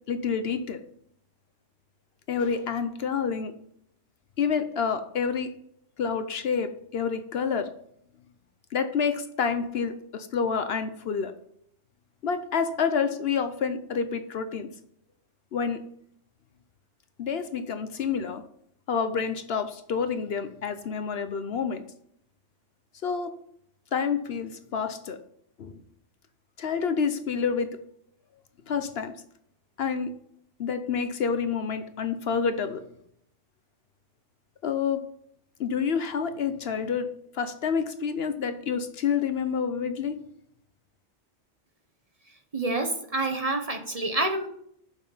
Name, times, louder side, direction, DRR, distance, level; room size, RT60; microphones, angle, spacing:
voice 1, 0.1-0.8 2.3-3.5 4.4-5.5 6.0-7.8 8.7-11.4 12.2-14.7 15.5-15.9 17.2-18.5 18.9-21.8 23.0-23.3 23.9-25.2 25.6-25.8 26.6-27.8 28.7-29.2 29.8-30.2 30.6-32.8 34.6-35.1 35.6-40.3, left 6 dB, 60° left, 10 dB, 0.8 m, -28 dB
voice 2, 42.5-44.5, right 2 dB, 35° right, 5 dB, 0.9 m, -27 dB
7.1 x 5.8 x 5.5 m, 0.70 s
omnidirectional pair, 1.3 m